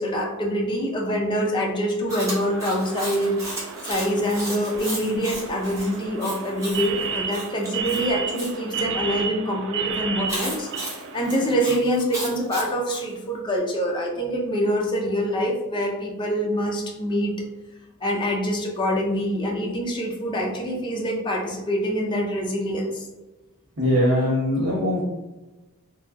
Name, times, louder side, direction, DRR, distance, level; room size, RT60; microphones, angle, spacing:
voice 1, 0.0-3.3 3.9-17.3 18.0-23.0, equal, 25° left, 0 dB, 0.4 m, -25 dB
Chewing mastication, 2.1-8.5 10.3-13.0, right 1 dB, 15° right, 0.7 m, -34 dB
sound 1, 2.1-11.6, right 6 dB, 60° right, 0.3 m, -33 dB
voice 2, 23.8-25.0, left 1 dB, 75° right, -9 dB, 1.0 m, -21 dB
2.7 x 2.2 x 2.3 m, 1.1 s
head